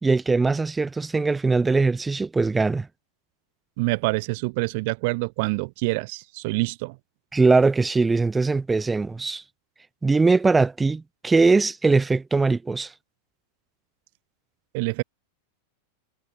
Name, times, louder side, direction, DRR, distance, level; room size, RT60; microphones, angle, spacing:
voice 1, 0.0-2.9 7.3-9.4 10.0-12.9, right 3 dB, 10° right, 3.4 m, -21 dB
voice 2, 3.8-7.0 14.7-15.0, right 27 dB, 45° right, 1.6 m, -26 dB
figure-of-eight pair, 90°, 0 cm